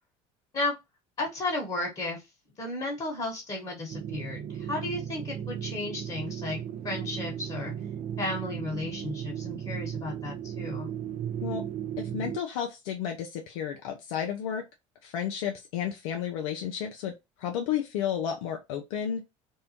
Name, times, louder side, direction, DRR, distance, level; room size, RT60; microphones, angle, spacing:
voice 1, 1.2-2.2 2.6-6.6 6.8-7.7 8.2-10.9, left 2 dB, 30° left, 1.3 m, -33 dB
sound 1, 3.9-12.4, right 9 dB, 50° right, 0.5 m, -36 dB
voice 2, 12.0-14.6 15.0-19.2, left 9 dB, 80° left, 0.5 m, -32 dB
2.6 x 2.1 x 2.8 m
hypercardioid pair, 80°, 17 cm